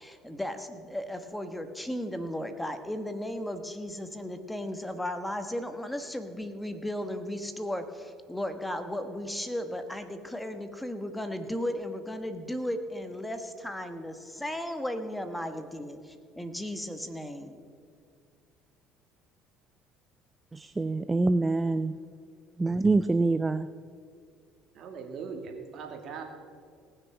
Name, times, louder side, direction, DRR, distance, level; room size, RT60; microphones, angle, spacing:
voice 1, 0.0-17.6, left 1 dB, 5° left, 8 dB, 1.2 m, -35 dB
voice 2, 20.5-22.0 22.6-23.7, right 3 dB, 20° right, 13 dB, 0.4 m, -25 dB
voice 3, 24.7-26.2, right 5 dB, 55° right, 3 dB, 2.1 m, -40 dB
18.5 x 6.5 x 5.9 m, 2.2 s
supercardioid pair, 75°, 0 cm